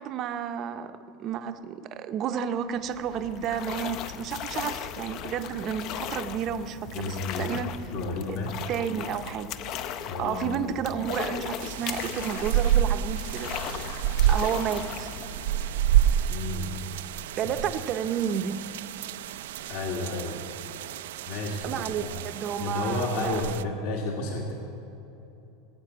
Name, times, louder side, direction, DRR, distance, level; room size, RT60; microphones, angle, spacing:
voice 1, 0.0-7.7 8.3-8.4 8.7-9.5 10.2-13.5 13.8-13.9 14.3-15.1 17.4-18.6 21.6-23.4, right 8 dB, 30° right, 9 dB, 0.6 m, -31 dB
sound 1, 2.7-16.5, left 9 dB, 40° left, 0.5 m, -37 dB
voice 2, 6.9-8.6 10.1-10.6 16.3-16.8 17.4-17.5 19.7-20.4 21.3-22.3 22.6-24.5, left 2 dB, 55° left, 0 dB, 1.8 m, -32 dB
sound 2, 11.6-23.6, right 11 dB, 90° right, 0.4 m, -29 dB
18.5 x 8.2 x 7.9 m, 2.9 s
supercardioid pair, 165°, 0 cm